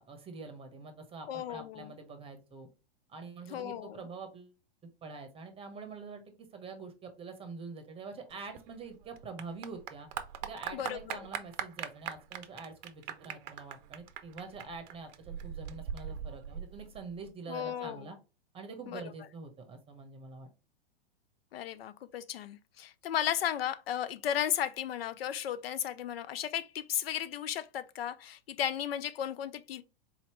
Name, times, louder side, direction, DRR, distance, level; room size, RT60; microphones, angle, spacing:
voice 1, 0.0-2.7 3.1-4.6 5.0-6.2 6.5-10.1 10.4-18.2 18.5-20.5, right 4 dB, 20° right, 1.0 m, -45 dB
voice 2, 1.3-1.9 3.5-4.0 10.7-11.3 17.5-18.1 18.9-19.0 21.5-29.8, left 10 dB, 70° left, 0.5 m, -35 dB
Clapping / Applause, 8.3-17.3, right 9 dB, 45° right, 0.6 m, -41 dB
4.1 x 2.9 x 3.0 m
hypercardioid pair, 110°, 30 cm